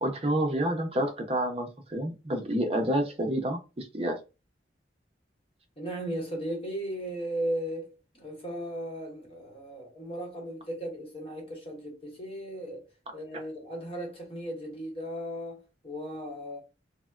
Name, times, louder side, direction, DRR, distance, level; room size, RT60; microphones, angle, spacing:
voice 1, 0.0-4.2, right 1 dB, 35° right, 0.6 m, -29 dB
voice 2, 5.8-12.9 13.1-16.6, right 1 dB, 35° left, 1.0 m, -36 dB
3.4 x 2.1 x 2.3 m
head